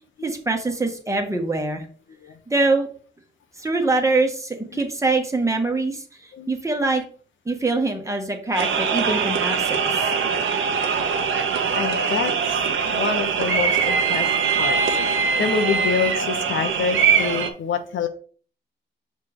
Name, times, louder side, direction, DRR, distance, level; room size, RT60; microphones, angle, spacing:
voice 1, 0.2-1.8 2.5-2.9 3.6-6.0 6.5-7.0 7.4-9.8, right 3 dB, 15° right, 2 dB, 1.4 m, -23 dB
sound 1, 8.5-17.5, right 6 dB, 85° right, 1.1 m, -22 dB
voice 2, 11.7-12.7 12.9-14.3 14.6-14.8 15.4-18.1, left 6 dB, 75° left, 6 dB, 1.1 m, -26 dB
6.6 x 3.5 x 4.8 m, 0.41 s
wide cardioid pair, 125°, 20 cm